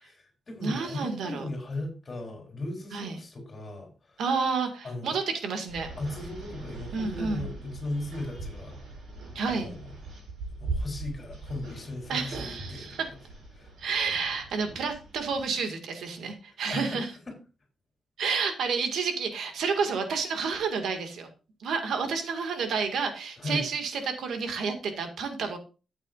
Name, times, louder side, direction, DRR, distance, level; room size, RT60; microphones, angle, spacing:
voice 1, 0.0-4.2 4.8-5.2 6.0-8.8 9.5-9.8 10.6-13.0 13.5-13.9 16.7-17.4 23.4-23.6, left 2 dB, 30° left, 1 dB, 3.5 m, -37 dB
voice 2, 0.6-1.5 2.9-3.2 4.2-5.9 6.9-7.5 9.4-9.7 12.1-13.1 13.8-17.1 18.2-21.3 21.6-25.6, right 5 dB, 80° right, 5 dB, 1.9 m, -30 dB
sound 1, 5.7-15.5, right 2 dB, 65° right, 6.2 m, -40 dB
13.0 x 8.1 x 2.5 m, 0.33 s
wide cardioid pair, 155°, 0 cm